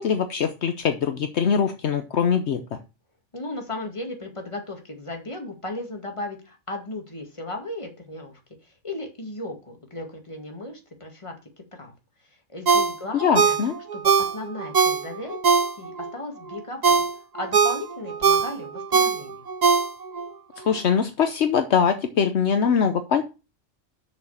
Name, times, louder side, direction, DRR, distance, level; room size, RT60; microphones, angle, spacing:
voice 1, 0.0-2.6 13.1-13.7 20.7-23.2, left 7 dB, 70° left, 8 dB, 1.1 m, -22 dB
voice 2, 3.3-11.9 12.5-13.6 13.9-15.4 15.8-17.1 17.3-19.4, left 2 dB, 25° left, 3 dB, 2.2 m, -36 dB
Ringtone, 12.7-16.1 16.5-20.3 20.7-20.8, right 5 dB, 40° right, 0.7 m, -21 dB
6.8 x 6.6 x 7.1 m, 0.30 s
omnidirectional pair, 1.2 m